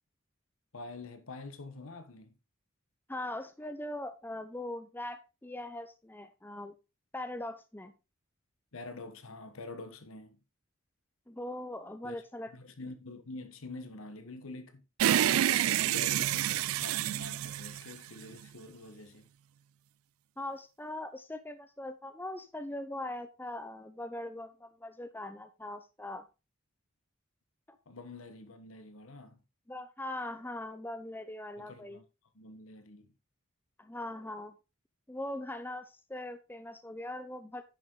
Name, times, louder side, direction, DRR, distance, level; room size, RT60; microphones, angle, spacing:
voice 1, 0.7-2.3 8.7-10.4 12.0-14.8 15.8-19.3 27.9-29.4 31.6-32.0 32.3-33.1, left 3 dB, 80° left, 1.3 m, -46 dB
voice 2, 3.1-6.7 7.1-7.9 11.3-12.5 20.4-26.2 29.7-32.0 33.8-34.5 35.1-37.6, left 1 dB, 10° left, 0.7 m, -41 dB
sound 1, 15.0-18.5, right 12 dB, 90° right, 0.3 m, -28 dB
10.0 x 6.5 x 3.8 m
head